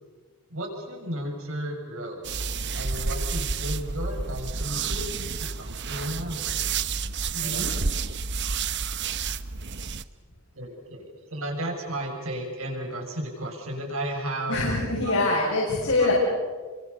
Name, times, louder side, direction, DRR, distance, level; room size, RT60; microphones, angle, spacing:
voice 1, 0.5-2.4 2.7-5.1 5.4-6.6 7.3-7.6 10.5-14.6 15.0-15.3 16.0-16.1, right 1 dB, 75° right, 1 dB, 7.1 m, -34 dB
sound 1, 2.2-10.0, right 5 dB, 55° right, 1.0 m, -30 dB
voice 2, 7.3-7.7 14.5-16.1, left 2 dB, 75° left, -4 dB, 7.2 m, -24 dB
29.5 x 25.0 x 7.1 m, 1.5 s
head